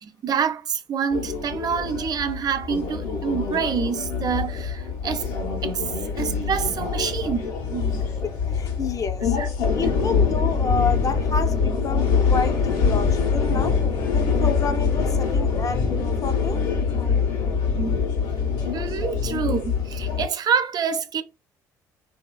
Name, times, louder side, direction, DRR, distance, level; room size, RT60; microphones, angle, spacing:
voice 1, 0.0-5.3 5.6-5.9 6.2-8.0 9.4-9.5 17.7-18.1 18.6-21.2, right 7 dB, 50° right, 0.5 m, -27 dB
sound 1, 1.1-20.3, left 5 dB, 75° left, 1.1 m, -24 dB
voice 2, 8.2-9.4 9.7-13.8 14.1-16.6, left 4 dB, 40° left, 0.7 m, -29 dB
3.0 x 2.7 x 2.3 m
hypercardioid pair, 60°, 9 cm